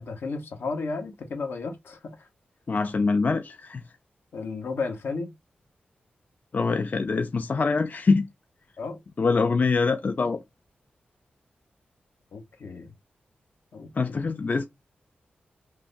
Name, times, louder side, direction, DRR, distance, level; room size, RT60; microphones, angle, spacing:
voice 1, 0.0-2.3 4.3-5.3 8.8-9.0 12.3-12.9 13.7-14.2, left 4 dB, 75° left, 0.7 m, -33 dB
voice 2, 2.7-3.8 6.5-8.3 9.2-10.4 13.9-14.6, left 4 dB, 50° left, 0.3 m, -24 dB
3.2 x 2.1 x 2.5 m
cardioid pair, 45°, 4 cm